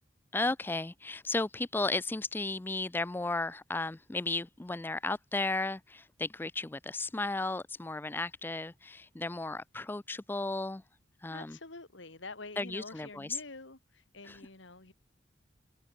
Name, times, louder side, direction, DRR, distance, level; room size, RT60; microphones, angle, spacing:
voice 1, 0.3-10.8 11.2-11.6 12.6-13.3 14.3-14.4, left 2 dB, 10° left, 0.3 m, -34 dB
voice 2, 11.3-14.9, left 3 dB, 75° left, 2.5 m, -47 dB
head